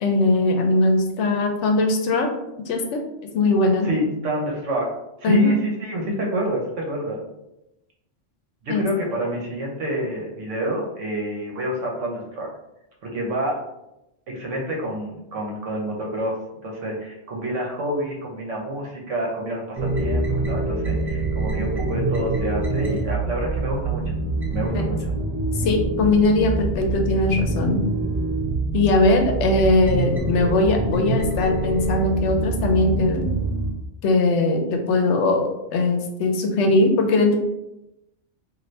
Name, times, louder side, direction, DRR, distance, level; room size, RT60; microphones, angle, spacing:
voice 1, 0.0-2.3 2.7-3.0 3.3-3.9 5.2-5.6 8.7-8.9 24.7-24.8 25.6-27.8 28.7-33.3 34.0-37.4, left 2 dB, 75° left, 4 dB, 0.8 m, -20 dB
voice 2, 3.8-4.9 5.2-7.2 8.6-12.5 13.0-13.5 14.3-16.3 16.6-24.0 24.5-25.0, right 1 dB, 80° right, -1 dB, 1.2 m, -28 dB
sound 1, 19.8-33.7, right 3 dB, 35° right, 0.6 m, -25 dB
2.7 x 2.6 x 3.1 m, 0.89 s
omnidirectional pair, 1.3 m